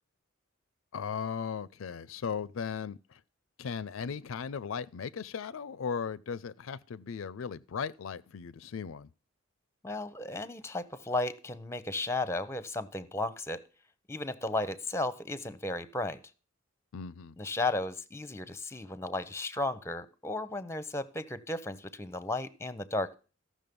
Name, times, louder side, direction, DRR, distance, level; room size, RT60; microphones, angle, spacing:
voice 1, 0.9-3.2 3.6-9.1 16.9-17.4, left 6 dB, 70° left, 0.4 m, -37 dB
voice 2, 9.8-13.6 14.1-16.2 17.4-23.1, left 2 dB, 15° left, 0.7 m, -34 dB
14.5 x 6.3 x 5.3 m
head